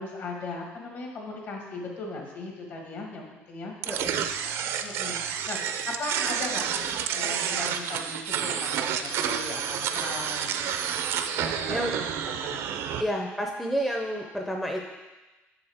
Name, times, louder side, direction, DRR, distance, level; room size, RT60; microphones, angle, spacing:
voice 1, 0.0-3.7 4.8-10.7 11.3-12.6, left 2 dB, 50° left, 1 dB, 1.6 m, -38 dB
sound 1, 3.8-13.0, right 8 dB, 65° right, 0.5 m, -29 dB
voice 2, 3.9-4.3 11.7-12.0 13.0-14.8, equal, 5° left, 0 dB, 0.5 m, -30 dB
7.6 x 7.1 x 3.5 m, 1.1 s
cardioid pair, 155°, 5 cm